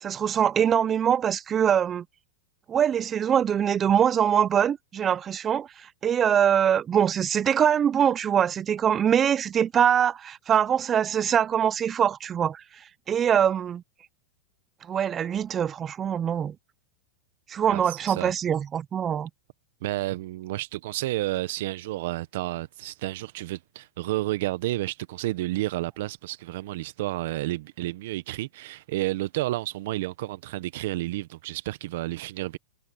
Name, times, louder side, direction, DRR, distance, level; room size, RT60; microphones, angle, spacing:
voice 1, 0.0-2.0 2.7-12.6 13.1-13.8 14.8-16.6 17.5-19.3, right 8 dB, 25° right, 0.5 m, -23 dB
voice 2, 17.7-18.3 19.8-32.6, right 17 dB, 65° right, 1.1 m, -31 dB
hypercardioid pair, 120°, 0 cm